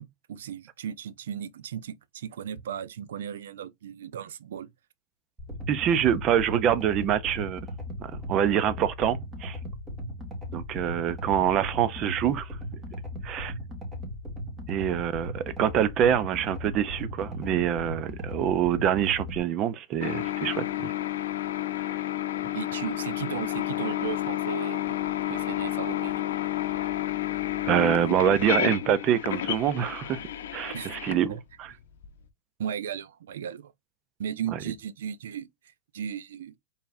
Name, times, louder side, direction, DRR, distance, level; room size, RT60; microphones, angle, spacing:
voice 1, 0.0-4.7 22.5-26.2 30.7-31.4 32.6-33.7 34.2-36.6, right 9 dB, 85° right, 0.6 m, -36 dB
sound 1, 5.4-19.4, left 1 dB, 15° right, 1.9 m, -37 dB
voice 2, 5.7-7.6 8.0-9.6 10.5-12.6 13.2-13.5 14.7-20.9 27.7-30.2 30.5-31.7 34.5-34.6, right 9 dB, 35° right, 0.6 m, -25 dB
sound 2, 20.0-32.1, left 13 dB, 80° left, 0.6 m, -30 dB
4.5 x 3.5 x 2.6 m
supercardioid pair, 145°, 0 cm